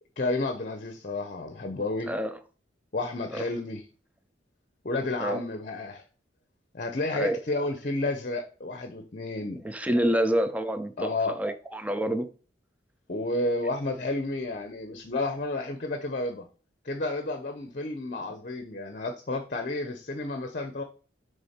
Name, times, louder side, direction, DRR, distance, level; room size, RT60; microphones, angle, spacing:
voice 1, 0.2-2.1 2.9-3.8 4.8-6.0 6.7-9.6 11.0-11.4 13.1-16.5 16.8-20.8, left 2 dB, 45° left, 0.7 m, -31 dB
voice 2, 9.6-12.3, right 1 dB, 10° right, 0.5 m, -27 dB
6.8 x 3.5 x 4.3 m
head